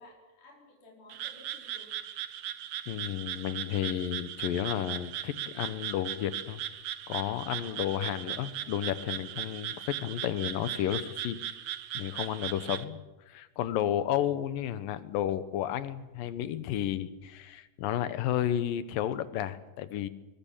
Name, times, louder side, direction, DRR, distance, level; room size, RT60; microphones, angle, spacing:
voice 1, 0.0-2.0 7.6-7.8 12.3-12.8, left 2 dB, 65° left, -2 dB, 6.1 m, -55 dB
Frog, 1.1-12.8, right 11 dB, 65° right, 2.0 m, -38 dB
voice 2, 2.9-6.6 7.1-11.4 11.9-13.0 13.3-20.1, left 11 dB, 85° left, 13 dB, 2.8 m, -32 dB
23.0 x 21.5 x 7.4 m, 1.1 s
omnidirectional pair, 3.9 m